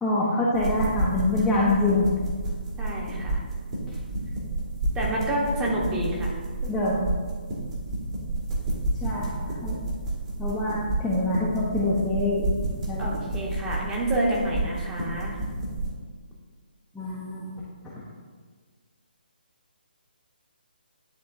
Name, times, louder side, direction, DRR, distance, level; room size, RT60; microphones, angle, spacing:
voice 1, 0.0-2.1 3.9-4.0 6.7-7.1 9.0-9.8 10.4-12.5 12.9-13.1 16.9-17.5, left 2 dB, 5° left, -9 dB, 0.7 m, -25 dB
sound 1, 0.5-15.9, right 2 dB, 35° right, 1.5 m, -30 dB
voice 2, 2.8-3.4 4.9-6.4 6.6-6.7 13.0-15.4, right 1 dB, 15° right, -4 dB, 1.1 m, -28 dB
10.5 x 3.7 x 2.7 m, 1.5 s
figure-of-eight pair, 150°, 5 cm